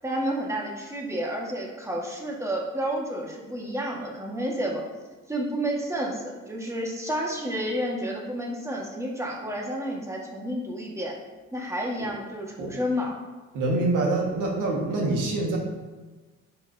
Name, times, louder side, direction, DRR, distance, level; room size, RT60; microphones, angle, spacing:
voice 1, 0.0-4.8 5.3-11.2 11.5-13.2, equal, 10° right, -2 dB, 1.6 m, -30 dB
voice 2, 13.5-15.6, right 2 dB, 85° right, -1 dB, 1.7 m, -25 dB
10.5 x 6.8 x 2.8 m, 1.3 s
cardioid pair, 90°, 30 cm